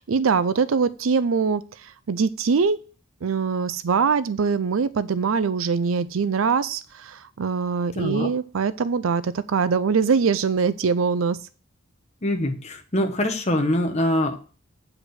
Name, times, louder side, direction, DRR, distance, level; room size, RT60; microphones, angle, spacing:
voice 1, 0.0-2.8 3.2-11.4, right 5 dB, 80° right, 15 dB, 0.5 m, -23 dB
voice 2, 8.0-8.3 12.2-14.4, left 1 dB, 35° left, 3 dB, 1.1 m, -24 dB
8.4 x 5.0 x 6.4 m, 0.37 s
head